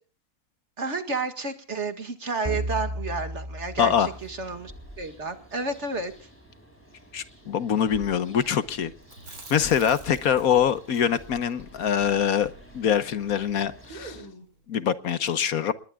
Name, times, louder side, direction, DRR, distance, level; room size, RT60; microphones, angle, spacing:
voice 1, 0.8-6.1, right 3 dB, 45° right, 2.2 m, -31 dB
sound 1, 2.4-5.1, equal, 20° right, 3.5 m, -34 dB
sound 2, 3.7-14.2, equal, 5° left, 7.8 m, -49 dB
voice 2, 3.8-4.1 7.1-8.9 9.5-14.2 14.7-15.7, left 8 dB, 70° left, 1.4 m, -24 dB
Chewing mastication, 9.0-13.2 13.5-13.6 13.9-14.6, right 3 dB, 70° right, 4.3 m, -47 dB
29.5 x 20.5 x 2.4 m
omnidirectional pair, 1.6 m